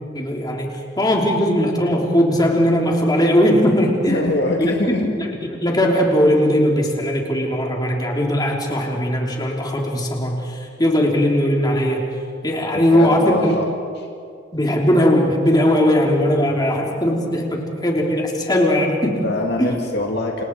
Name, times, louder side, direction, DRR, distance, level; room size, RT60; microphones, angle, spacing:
voice 1, 0.1-4.2 4.6-5.3 5.6-12.1 12.4-13.6 14.5-19.2 19.6-19.8, equal, 20° left, -1 dB, 3.4 m, -19 dB
voice 2, 4.1-5.1 12.7-13.7 19.2-20.4, left 1 dB, 60° left, 1 dB, 2.1 m, -23 dB
29.5 x 28.0 x 4.7 m, 2.3 s
head